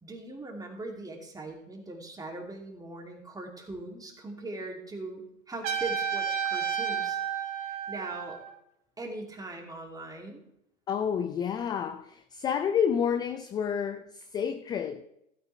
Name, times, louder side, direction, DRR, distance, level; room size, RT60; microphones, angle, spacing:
voice 1, 0.0-7.2 7.6-8.4 9.0-10.4, right 2 dB, 10° right, 2.7 m, -40 dB
Trumpet, 5.6-8.5, right 7 dB, 40° right, 3.1 m, -31 dB
voice 2, 10.9-15.0, left 7 dB, 10° left, 0.3 m, -29 dB
16.0 x 8.8 x 3.2 m
hypercardioid pair, 105°, 38 cm